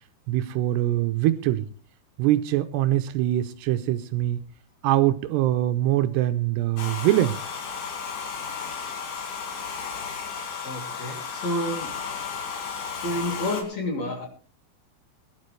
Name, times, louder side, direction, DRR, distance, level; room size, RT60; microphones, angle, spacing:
voice 1, 0.3-1.7 2.2-4.4 4.8-7.4, right 14 dB, 80° right, 9 dB, 2.7 m, -23 dB
Domestic sounds home sounds, 6.8-13.6, left 6 dB, 70° left, 4.5 m, -34 dB
voice 2, 10.6-12.0 13.0-14.3, left 1 dB, 45° left, 2 dB, 3.6 m, -30 dB
22.0 x 12.0 x 3.2 m, 0.37 s
omnidirectional pair, 5.0 m